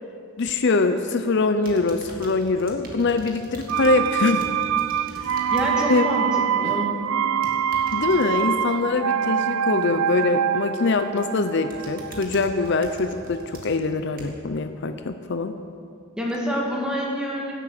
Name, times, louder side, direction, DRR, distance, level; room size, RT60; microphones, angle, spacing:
voice 1, 0.4-4.4 5.2-5.4 5.8-6.1 7.9-15.5, left 3 dB, 55° left, 8 dB, 0.6 m, -23 dB
sound 1, 1.6-5.7 6.1-6.4 7.2-8.3 10.6-11.0 11.4-14.5 15.1-15.2, right 1 dB, 45° right, 2.1 m, -43 dB
sound 2, 3.7-13.4 13.7-13.8, right 8 dB, 85° right, 0.4 m, -25 dB
voice 2, 5.5-6.9 16.2-17.5, equal, 5° right, -3 dB, 2.3 m, -27 dB
17.0 x 8.6 x 6.6 m, 2.5 s
head